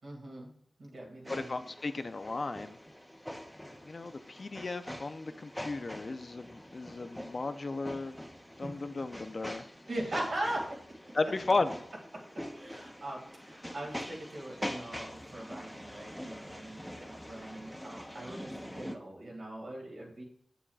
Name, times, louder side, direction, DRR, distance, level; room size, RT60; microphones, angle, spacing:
voice 1, 0.0-0.5 0.8-1.5 8.6-8.7 9.9-10.8 12.1-20.2, right 1 dB, 75° right, -2 dB, 2.2 m, -40 dB
voice 2, 1.3-2.8 3.8-8.2 8.6-9.6 11.1-11.7, left 3 dB, 50° left, 10 dB, 0.4 m, -34 dB
sound 1, 1.3-19.0, equal, 5° left, 0.7 m, -44 dB
7.3 x 6.8 x 2.4 m, 0.65 s
wide cardioid pair, 65°, 0 cm